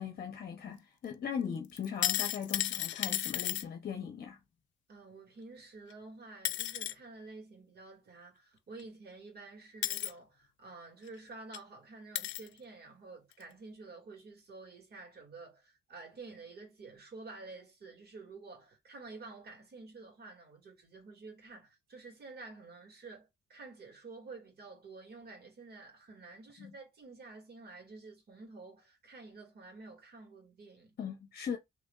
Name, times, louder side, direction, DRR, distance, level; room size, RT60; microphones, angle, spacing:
voice 1, 0.0-4.4 26.6-26.7 31.0-31.6, left 7 dB, 50° left, 0.8 m, -39 dB
sound 1, 1.8-3.6 5.9-6.0 6.5-6.9 8.8-8.9 9.8-10.1 11.1-11.2 11.5-11.6 12.2-12.5 13.3-13.4, left 12 dB, 70° left, 0.5 m, -33 dB
voice 2, 4.9-30.9, right 3 dB, 50° right, 2.3 m, -50 dB
3.4 x 3.3 x 2.4 m
cardioid pair, 90°, 20 cm